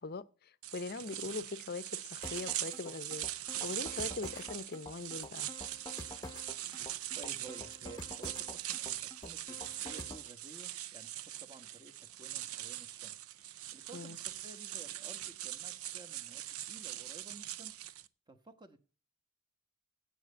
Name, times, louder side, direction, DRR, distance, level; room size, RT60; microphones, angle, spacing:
voice 1, 0.0-3.3 3.6-5.5 13.9-14.2, left 3 dB, 45° left, 0.6 m, -41 dB
sound 1, 0.6-18.1, right 13 dB, 85° right, 0.6 m, -42 dB
sound 2, 2.2-10.3, left 2 dB, 15° left, 0.9 m, -48 dB
voice 2, 7.1-11.9 12.2-13.2 13.7-17.7 18.3-18.8, right 3 dB, 20° right, 1.2 m, -54 dB
8.4 x 7.6 x 8.8 m
head